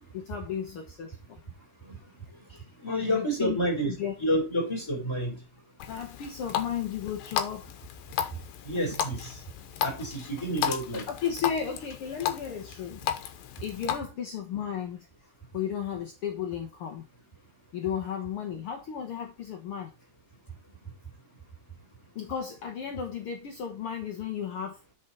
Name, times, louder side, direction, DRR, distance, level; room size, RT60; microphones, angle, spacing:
voice 1, 0.1-1.4 2.9-3.6 3.8-4.1 5.9-7.9 11.1-13.1 13.6-17.0 17.7-19.9 22.1-24.8, left 8 dB, 65° left, 1.4 m, -34 dB
voice 2, 2.8-3.9 4.2-5.4 8.6-9.3 9.8-11.1, equal, 10° left, 3.6 m, -29 dB
Water tap faucet, 5.8-14.0, left 10 dB, 80° left, 2.7 m, -34 dB
9.0 x 5.5 x 4.2 m
omnidirectional pair, 4.0 m